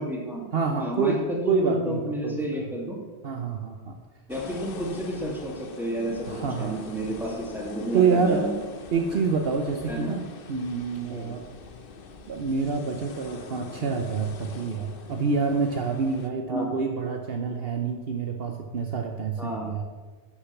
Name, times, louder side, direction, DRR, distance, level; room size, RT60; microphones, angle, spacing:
voice 1, 0.0-0.4 0.8-3.0 4.3-6.3 6.6-8.5 9.9-10.1 11.1-11.3 16.5-16.6 19.4-19.7, right 1 dB, ahead, -2 dB, 2.3 m, -31 dB
voice 2, 0.5-1.2 1.5-2.7 3.2-4.0 6.3-6.8 7.9-8.5 8.9-11.4 12.3-19.8, right 5 dB, 60° right, 3 dB, 1.0 m, -27 dB
sound 1, 4.3-16.3, left 4 dB, 55° left, 1.0 m, -43 dB
11.5 x 6.6 x 5.9 m, 1.4 s
omnidirectional pair, 1.2 m